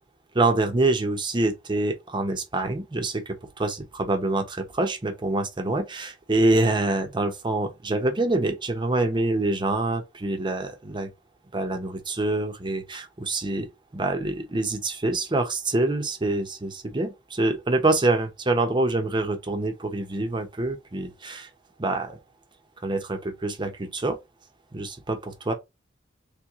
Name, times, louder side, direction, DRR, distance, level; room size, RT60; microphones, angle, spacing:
voice 1, 0.3-11.1 11.5-13.7 13.9-21.5 21.8-22.2 22.8-24.2 24.7-25.5, right 2 dB, 25° right, 0.8 m, -26 dB
3.3 x 3.0 x 3.5 m
head